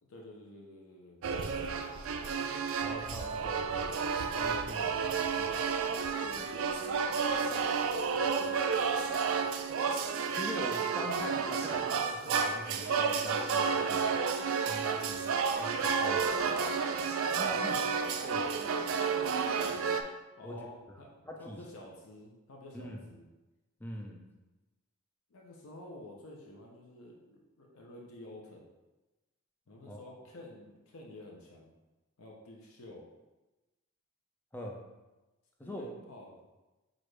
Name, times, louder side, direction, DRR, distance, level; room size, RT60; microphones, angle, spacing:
voice 1, 0.1-1.9 6.2-8.7 17.4-18.0 20.4-23.3 25.3-28.7 29.7-31.7 32.2-33.1 35.6-36.3, left 1 dB, 75° left, -1 dB, 0.7 m, -50 dB
sound 1, 1.2-20.0, right 5 dB, 70° right, 0.3 m, -31 dB
voice 2, 2.8-4.0 4.3-5.6 10.3-14.2 14.6-15.3 15.6-16.7 17.4-18.6 20.4-20.7 21.3-21.6 22.7-23.0 23.8-24.2 29.9-30.0 34.5-34.8 35.6-35.9, left 1 dB, 10° left, 0 dB, 0.4 m, -43 dB
6.1 x 2.5 x 3.2 m, 1.1 s
head